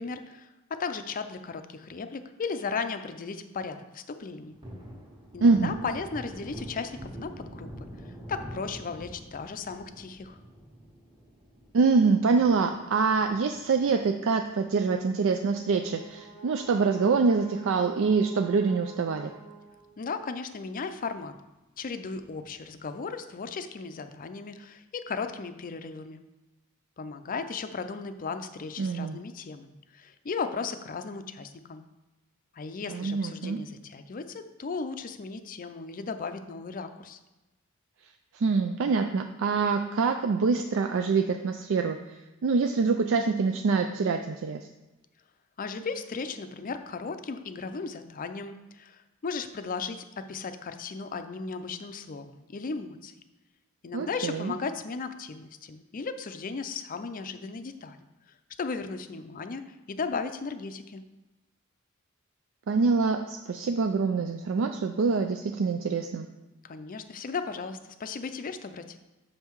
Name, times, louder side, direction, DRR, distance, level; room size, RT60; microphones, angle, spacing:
voice 1, 0.0-4.5 5.3-7.9 8.3-10.4 20.0-21.3 21.8-26.2 27.0-31.8 32.5-37.2 45.6-53.1 53.8-58.0 58.6-61.0 66.6-69.0, left 4 dB, 40° left, 9 dB, 0.5 m, -36 dB
Thunder, 4.2-14.9 15.3-15.4 15.8-17.3 17.6-17.7 18.1-18.9 19.3-19.4 19.7-19.8 22.2-22.7, equal, 20° right, 1.5 m, -46 dB
voice 2, 5.4-5.7 11.7-19.3 28.8-29.2 32.9-33.6 38.3-42.0 42.4-44.7 53.9-54.5 62.7-66.3, right 4 dB, 65° right, 6 dB, 0.4 m, -25 dB
Brass instrument, 15.1-20.2, right 4 dB, 80° right, 1.5 m, -49 dB
6.5 x 5.5 x 4.6 m, 1.1 s
head